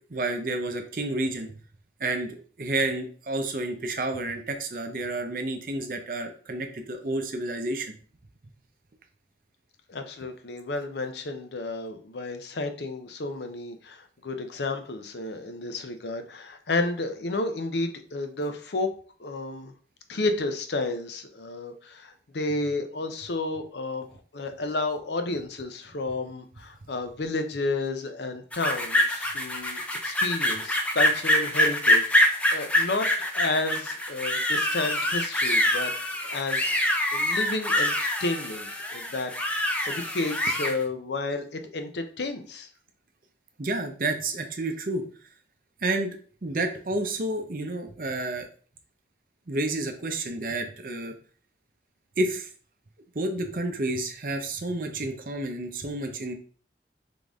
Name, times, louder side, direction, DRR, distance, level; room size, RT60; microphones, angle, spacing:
voice 1, 0.1-1.5 2.0-7.9 43.6-45.0 45.8-46.2 46.4-48.5 49.5-51.1 52.2-52.5 53.1-56.3, right 2 dB, 50° right, 5 dB, 0.7 m, -30 dB
voice 2, 9.9-18.9 19.2-19.7 20.1-33.1 33.3-35.9 36.2-36.7 37.1-42.7, left 2 dB, 75° left, 6 dB, 0.6 m, -31 dB
sound 1, 28.5-40.8, left 1 dB, 10° left, 0.5 m, -25 dB
3.8 x 3.7 x 3.6 m, 0.43 s
head